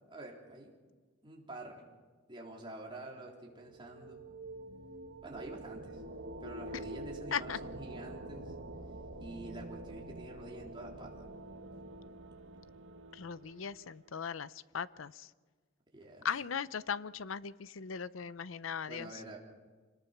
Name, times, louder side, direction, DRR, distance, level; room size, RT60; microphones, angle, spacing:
voice 1, 0.1-0.8 1.2-1.8 2.3-4.2 5.2-6.0 6.4-8.5 9.2-11.3 15.9-16.3 18.9-19.4, right 1 dB, 25° right, -2 dB, 3.7 m, -47 dB
sound 1, 3.5-14.1, right 1 dB, 85° right, 1.8 m, -47 dB
voice 2, 13.1-15.3 16.2-19.1, left 7 dB, 80° left, 16 dB, 0.6 m, -38 dB
26.0 x 19.5 x 6.0 m, 1.4 s
head